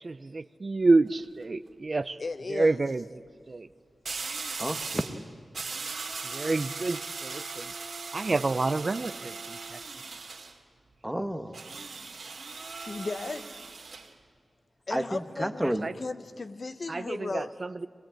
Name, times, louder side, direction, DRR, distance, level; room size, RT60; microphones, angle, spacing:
voice 1, 0.0-2.2 2.5-3.0 3.5-3.7 6.2-7.7 8.1-9.8 15.8-15.9 16.9-17.9, right 3 dB, 40° right, 14 dB, 0.5 m, -28 dB
sound 1, 0.9-1.2 4.0-5.2 5.5-10.5 11.5-14.1, right 4 dB, 70° right, 2.5 m, -38 dB
voice 2, 2.2-2.8 6.4-6.5 12.7-13.6 14.9-15.6 16.0-17.5, left 3 dB, 50° left, 11 dB, 0.9 m, -35 dB
voice 3, 4.6-5.3 11.0-11.6 14.9-15.9, right 1 dB, 5° right, 8 dB, 1.3 m, -31 dB
24.0 x 20.5 x 9.0 m, 2.1 s
wide cardioid pair, 105°, 0 cm